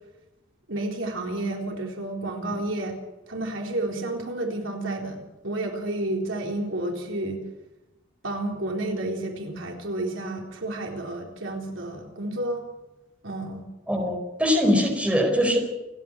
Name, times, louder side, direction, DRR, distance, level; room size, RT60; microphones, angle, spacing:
voice 1, 0.7-3.0 3.3-7.4 8.2-12.6 13.2-13.6, right 2 dB, 85° right, 1 dB, 3.9 m, -31 dB
voice 2, 13.9-15.6, equal, 5° right, 3 dB, 4.5 m, -22 dB
28.5 x 9.6 x 10.0 m, 1.0 s
head